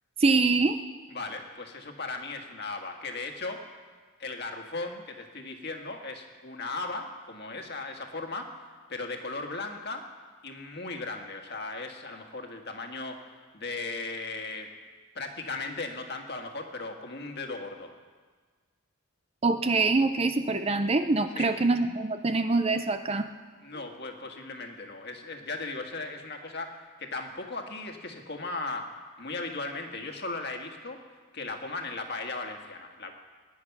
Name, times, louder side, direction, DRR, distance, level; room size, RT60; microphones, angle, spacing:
voice 1, 0.2-0.8 19.4-23.3, right 3 dB, 25° right, 9 dB, 0.5 m, -24 dB
voice 2, 1.1-3.6 4.2-8.6 8.9-10.0 10.4-13.3 13.5-14.7 15.2-17.9 21.4-21.5 23.6-31.0 31.3-33.1, left 3 dB, 45° left, 3 dB, 1.7 m, -37 dB
21.5 x 10.5 x 6.0 m, 1.5 s
head